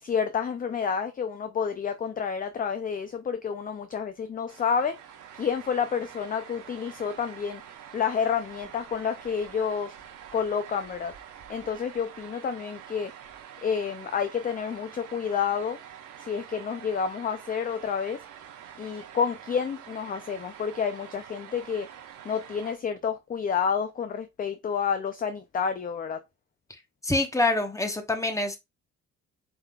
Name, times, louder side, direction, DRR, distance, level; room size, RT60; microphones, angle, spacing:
voice 1, 0.0-5.0 5.4-7.6 7.9-10.0 10.3-11.1 11.5-13.1 13.6-15.8 16.2-18.2 18.8-21.9 22.2-26.2, left 6 dB, 30° left, 0.4 m, -29 dB
sound 1, 4.5-22.8, right 9 dB, 85° right, 1.0 m, -46 dB
voice 2, 27.0-28.6, left 2 dB, 10° left, 1.0 m, -26 dB
5.0 x 3.7 x 2.3 m
cardioid pair, 90°, 30 cm